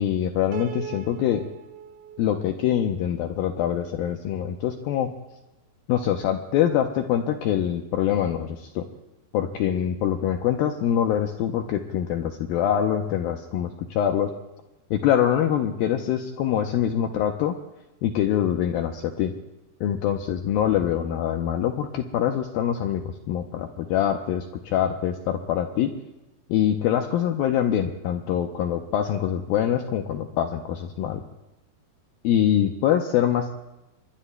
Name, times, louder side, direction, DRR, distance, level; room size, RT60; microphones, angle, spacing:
voice 1, 0.0-1.4 2.2-5.1 5.9-8.8 9.3-14.3 14.9-17.6 18.0-19.3 19.8-25.9 26.5-31.2 32.2-33.5, left 10 dB, 80° left, 4 dB, 2.2 m, -24 dB
Piano, 0.5-3.7, right 7 dB, 65° right, 2.2 m, -40 dB
26.5 x 23.0 x 2.2 m, 1.0 s
omnidirectional pair, 4.9 m